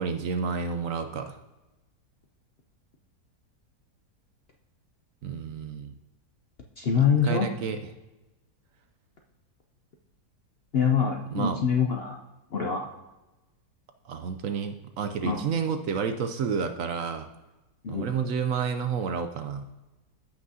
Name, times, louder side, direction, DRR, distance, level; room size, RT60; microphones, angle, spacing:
voice 1, 0.0-1.4 5.2-5.9 6.9-7.8 11.3-11.6 14.0-17.3 17.9-19.7, right 6 dB, 65° right, 8 dB, 0.9 m, -30 dB
voice 2, 6.8-7.5 10.7-12.2 12.5-12.9 15.2-15.5 17.8-18.1, left 6 dB, 55° left, 2 dB, 0.7 m, -25 dB
15.0 x 5.8 x 2.7 m, 1.1 s
omnidirectional pair, 1.7 m